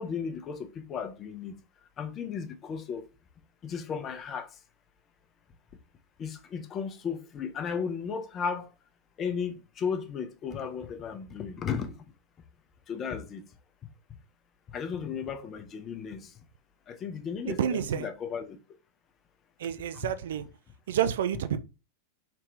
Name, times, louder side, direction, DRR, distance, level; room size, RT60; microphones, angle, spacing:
voice 1, 0.0-1.5 2.0-3.1 3.6-4.5 6.2-8.7 9.2-12.0 12.9-13.4 14.7-16.3 16.9-18.6, left 6 dB, 30° left, 0.6 m, -35 dB
voice 2, 17.6-18.1 19.6-20.4 20.9-21.6, right 9 dB, 60° right, 0.4 m, -29 dB
3.3 x 2.8 x 3.2 m
figure-of-eight pair, 90°, 0 cm